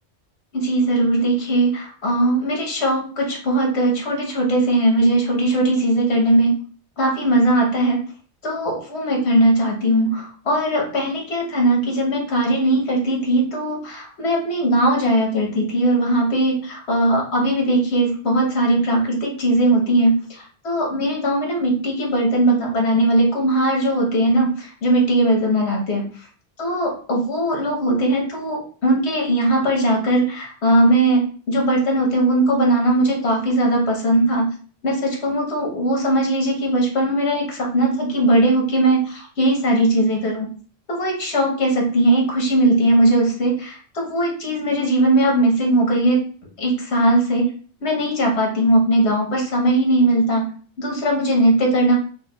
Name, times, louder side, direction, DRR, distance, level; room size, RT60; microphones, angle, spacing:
voice 1, 0.5-6.6 7.0-8.0 8.4-26.0 26.6-34.5 34.8-40.5 40.9-46.2 46.6-47.5 47.8-50.5 50.8-51.9, right 1 dB, 80° left, 0 dB, 1.3 m, -19 dB
4.5 x 2.4 x 2.3 m, 0.42 s
omnidirectional pair, 1.1 m